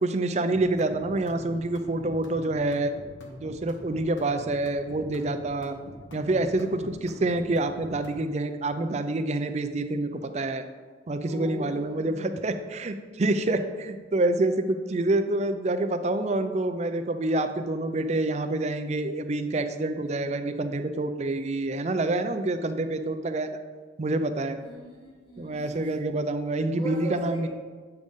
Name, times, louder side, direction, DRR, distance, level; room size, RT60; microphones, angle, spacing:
voice 1, 0.0-2.9 3.4-5.8 6.1-10.6 11.1-23.6 24.0-24.6 25.4-27.5, right 2 dB, 35° right, 8 dB, 0.4 m, -27 dB
sound 1, 0.5-8.3, left 1 dB, 85° left, 1.1 m, -45 dB
voice 2, 11.2-12.4 24.6-25.9 26.7-27.5, right 1 dB, 25° left, -7 dB, 1.4 m, -38 dB
8.0 x 5.1 x 3.6 m, 1.5 s
head